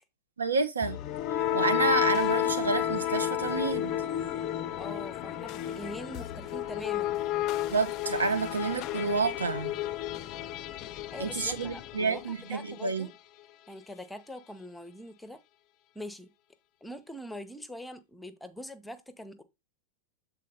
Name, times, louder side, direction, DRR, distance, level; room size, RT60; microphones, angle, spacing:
voice 1, 0.4-1.0 1.5-3.9 7.7-9.7 11.2-13.1, right 4 dB, 75° right, 0.8 m, -29 dB
sound 1, 0.8-12.7, left 12 dB, 40° left, 0.4 m, -31 dB
voice 2, 4.8-7.2 11.1-13.1 13.7-15.4 15.9-16.3 16.8-19.4, left 1 dB, 5° left, 0.8 m, -43 dB
7.5 x 4.0 x 4.0 m
figure-of-eight pair, 90°, 0 cm